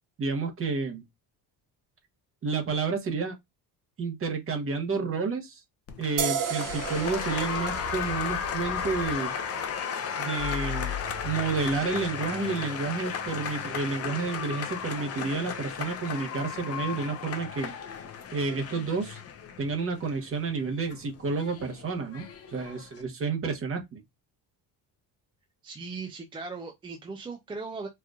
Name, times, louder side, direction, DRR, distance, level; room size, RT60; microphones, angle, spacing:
voice 1, 0.2-1.0 2.4-3.3 4.0-5.6 6.0-9.3 10.2-10.9 11.2-17.7 18.3-19.2 19.6-24.0, right 4 dB, 35° right, 0.9 m, -30 dB
Applause, 5.9-23.0, left 8 dB, 40° left, 0.6 m, -35 dB
sound 1, 6.2-13.5, right 7 dB, 55° right, 0.6 m, -37 dB
sound 2, 6.6-17.1, left 5 dB, 60° left, 1.5 m, -42 dB
voice 2, 25.6-27.9, right 4 dB, 15° right, 0.3 m, -38 dB
4.4 x 2.5 x 2.3 m
cardioid pair, 180°, 39 cm